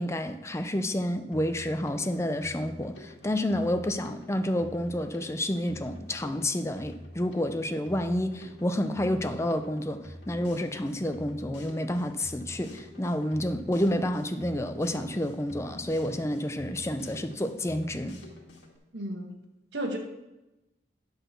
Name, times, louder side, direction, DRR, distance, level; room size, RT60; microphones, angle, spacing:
voice 1, 0.0-10.0 10.3-18.1, left 1 dB, 15° left, 8 dB, 0.5 m, -29 dB
Drum kit, 1.3-18.8, left 1 dB, 85° left, 2.0 m, -47 dB
voice 2, 18.9-19.3 19.7-20.0, right 1 dB, 75° right, 2 dB, 1.5 m, -33 dB
10.0 x 4.0 x 6.7 m, 0.98 s
head